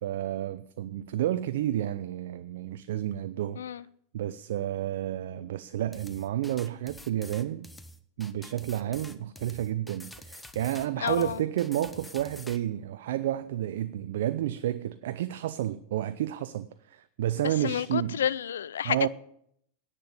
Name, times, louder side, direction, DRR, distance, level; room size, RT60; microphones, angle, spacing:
voice 1, 0.0-3.6 4.1-7.7 8.2-18.2 18.8-19.1, right 12 dB, 70° right, 0.5 m, -31 dB
sound 1, 5.9-12.6, left 1 dB, 5° left, 1.0 m, -47 dB
voice 2, 11.0-11.4 17.4-19.1, left 9 dB, 80° left, 0.5 m, -30 dB
10.5 x 8.4 x 9.2 m
hypercardioid pair, 95°, 0 cm